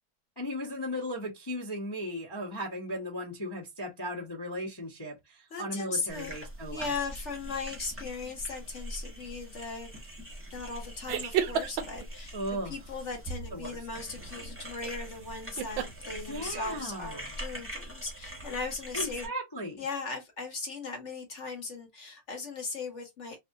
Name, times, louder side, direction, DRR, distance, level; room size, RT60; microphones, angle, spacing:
voice 1, 0.4-6.9 12.3-12.7 13.5-13.8 16.3-17.3 18.9-19.8, equal, 20° left, 0.6 m, -36 dB
voice 2, 5.5-6.4 6.7-9.9 10.5-19.3 19.8-23.4, left 4 dB, 50° left, 0.9 m, -38 dB
sound 1, 6.1-19.3, equal, 20° right, 0.3 m, -43 dB
sound 2, 11.1-12.0 14.8-15.1 15.6-15.9, right 8 dB, 75° right, 1.3 m, -30 dB
4.0 x 2.4 x 2.8 m
omnidirectional pair, 2.4 m